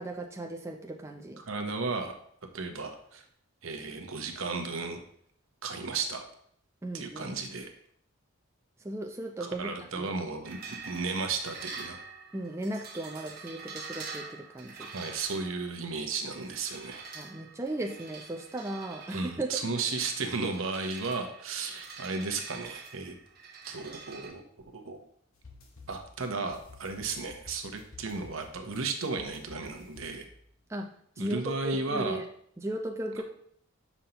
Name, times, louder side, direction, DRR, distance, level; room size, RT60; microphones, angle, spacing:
voice 1, 0.0-1.4 6.8-7.4 8.8-10.1 12.3-14.9 17.1-19.5 30.7-32.2 32.6-33.2, right 1 dB, 15° right, 2 dB, 0.4 m, -36 dB
voice 2, 1.4-2.1 2.5-3.2 3.6-5.0 5.6-6.2 6.9-7.7 9.4-12.0 14.8-17.0 19.1-23.2 23.7-24.4 24.7-25.0 25.9-30.3 31.2-32.2, right 4 dB, 70° right, 5 dB, 0.9 m, -34 dB
sound 1, 10.4-24.3, right 5 dB, 45° right, 1.1 m, -46 dB
sound 2, 25.3-30.6, left 3 dB, 80° left, 1.3 m, -53 dB
7.2 x 5.3 x 2.9 m, 0.64 s
head